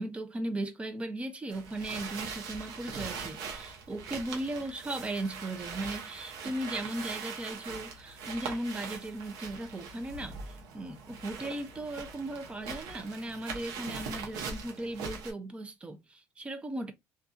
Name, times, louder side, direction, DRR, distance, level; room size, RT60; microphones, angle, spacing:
voice 1, 0.0-16.9, right 1 dB, 15° right, 0.6 m, -37 dB
sound 1, 1.5-15.3, right 5 dB, 75° right, 0.9 m, -41 dB
2.6 x 2.4 x 2.3 m
supercardioid pair, 105°, 7 cm